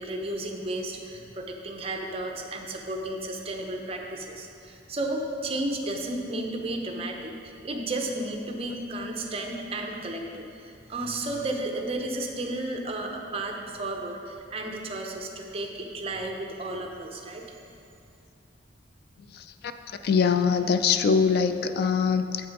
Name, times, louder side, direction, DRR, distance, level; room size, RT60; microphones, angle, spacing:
voice 1, 0.0-17.4, right 2 dB, 30° right, 2 dB, 0.7 m, -33 dB
voice 2, 20.0-22.5, left 6 dB, 55° left, 9 dB, 0.3 m, -23 dB
7.9 x 5.9 x 4.7 m, 2.6 s
head